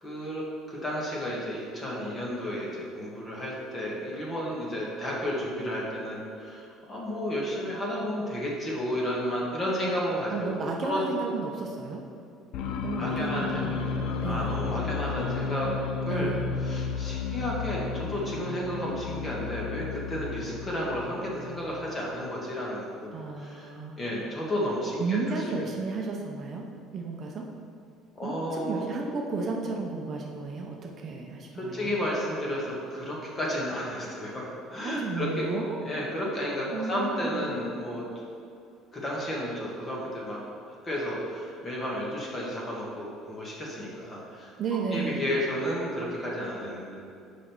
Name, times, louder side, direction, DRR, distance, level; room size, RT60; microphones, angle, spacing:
voice 1, 0.0-11.0 13.0-15.7 16.1-16.3 16.6-25.3 28.1-28.9 31.5-34.4 34.7-35.4 35.8-38.0 38.9-40.4 40.7-44.5 44.9-46.9, equal, 20° left, -4 dB, 1.5 m, -32 dB
voice 2, 10.3-12.0 12.8-14.6 16.1-16.5 23.1-24.0 25.0-26.6 26.9-27.5 28.2-31.9 34.8-35.8 36.7-37.5 44.6-45.3, right 4 dB, 35° right, 0 dB, 0.6 m, -33 dB
sound 1, 12.5-22.1, left 5 dB, 60° left, 0.5 m, -33 dB
6.2 x 5.2 x 4.5 m, 2.5 s
cardioid pair, 150°, 0 cm